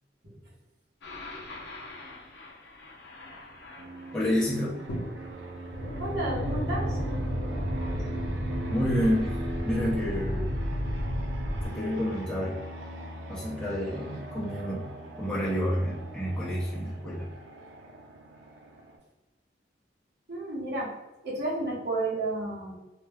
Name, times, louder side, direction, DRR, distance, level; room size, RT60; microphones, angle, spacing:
sound 1, 1.0-4.2 4.9-11.7, equal, 70° left, 0.5 m, -33 dB
Fixed-wing aircraft airplane, 3.8-19.0, right 1 dB, 90° right, 0.5 m, -40 dB
voice 1, 4.1-4.8 8.7-9.4 9.6-10.5 11.6-12.6 13.3-14.9 15.2-17.3, equal, 5° left, -9 dB, 0.6 m, -29 dB
voice 2, 6.0-7.0 20.3-20.9 21.2-22.8, right 2 dB, 60° right, -5 dB, 0.8 m, -31 dB
2.3 x 2.0 x 3.4 m, 1.1 s
head